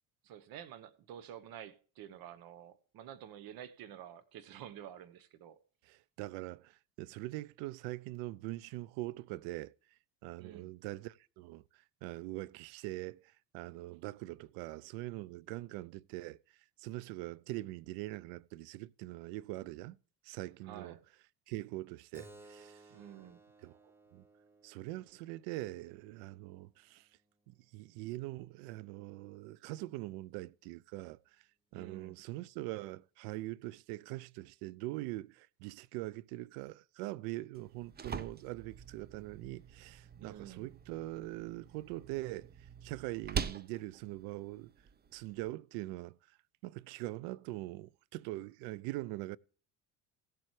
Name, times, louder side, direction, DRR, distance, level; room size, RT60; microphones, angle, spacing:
voice 1, 0.2-5.6 10.4-10.7 20.6-21.0 22.9-23.4 31.7-32.2 40.2-40.7, right 10 dB, 65° right, 1.2 m, -50 dB
voice 2, 5.9-9.7 10.2-16.4 16.8-20.0 20.2-21.0 21.5-22.8 23.6-23.7 24.1-24.2 24.6-27.1 27.5-31.2 31.7-42.5 42.8-44.7 45.1-46.2 46.6-49.4, right 18 dB, 85° right, 0.5 m, -43 dB
Keyboard (musical), 22.1-27.3, right 2 dB, 5° right, 1.1 m, -60 dB
sound 1, 37.5-45.5, right 6 dB, 25° right, 0.7 m, -44 dB
17.0 x 7.5 x 3.2 m
supercardioid pair, 95°, 37 cm